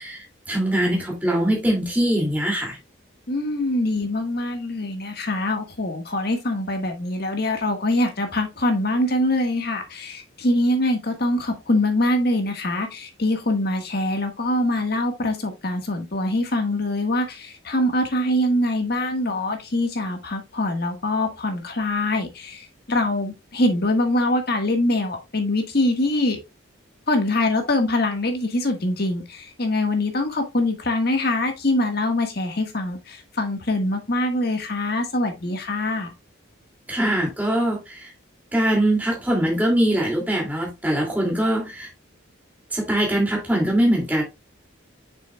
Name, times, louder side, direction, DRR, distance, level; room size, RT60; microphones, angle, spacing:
voice 1, 0.0-2.8 36.9-38.1 38.5-41.9 42.7-44.2, right 1 dB, 10° right, 2.5 m, -22 dB
voice 2, 3.3-26.4 27.1-36.1, left 1 dB, 50° left, 1.5 m, -24 dB
7.4 x 6.2 x 2.3 m
head